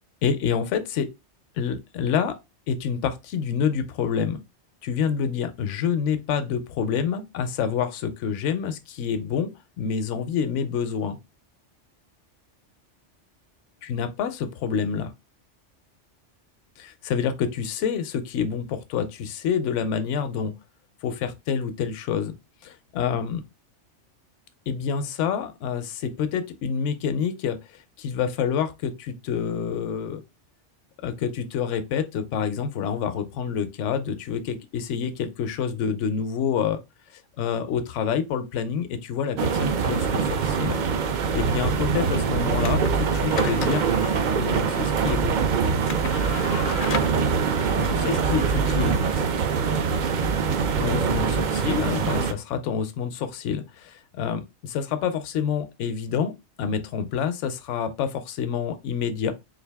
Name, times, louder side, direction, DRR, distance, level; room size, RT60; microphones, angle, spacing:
voice 1, 0.2-1.1 1.6-2.4 2.7-4.4 4.8-9.5 9.8-11.2 13.8-15.1 16.8-20.5 21.0-22.4 22.6-23.4 24.7-30.2 31.0-36.8 37.4-40.8 41.3-43.8 44.4-45.4 47.8-49.0 50.8-56.3 56.6-59.3, left 7 dB, 80° left, 0.9 m, -27 dB
sound 1, 39.4-52.3, right 6 dB, 60° right, 0.5 m, -23 dB
sound 2, 42.6-51.1, left 6 dB, 60° left, 0.6 m, -37 dB
3.9 x 2.5 x 3.4 m
omnidirectional pair, 1.2 m